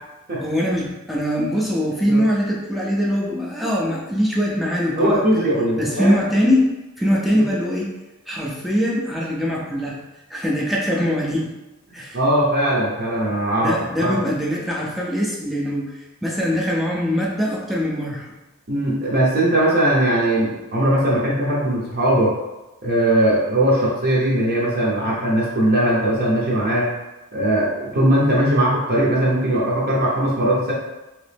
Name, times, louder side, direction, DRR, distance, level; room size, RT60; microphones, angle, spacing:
voice 1, 0.4-5.5 5.8-6.7 7.0-7.9 8.3-10.0 10.3-11.5 11.9-12.2 13.6-18.3, equal, ahead, -4 dB, 0.5 m, -22 dB
voice 2, 5.0-6.2 12.1-14.2 18.7-22.3 22.8-26.9 27.3-30.7, right 1 dB, 45° right, -6 dB, 0.7 m, -19 dB
3.1 x 3.0 x 3.3 m, 1.0 s
head